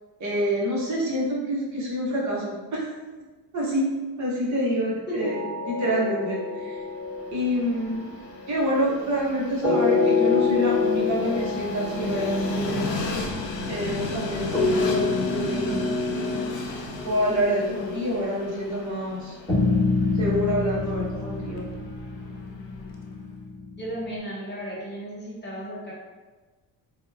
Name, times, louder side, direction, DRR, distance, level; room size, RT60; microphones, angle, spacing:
voice 1, 0.2-2.8 3.5-3.9 4.2-5.4 5.7-6.8 7.3-8.2 8.5-13.0 13.7-15.9 17.0-19.3 20.2-21.6, equal, 40° right, -4 dB, 0.7 m, -27 dB
sound 1, 5.2-8.8 9.6-18.6 19.5-24.1, left 4 dB, 10° left, 1.2 m, -27 dB
Train, 7.0-23.1, left 2 dB, 85° left, 0.5 m, -35 dB
voice 2, 23.8-25.9, equal, 25° left, -6 dB, 0.5 m, -34 dB
2.7 x 2.1 x 2.2 m, 1.3 s
cardioid pair, 135°, 43 cm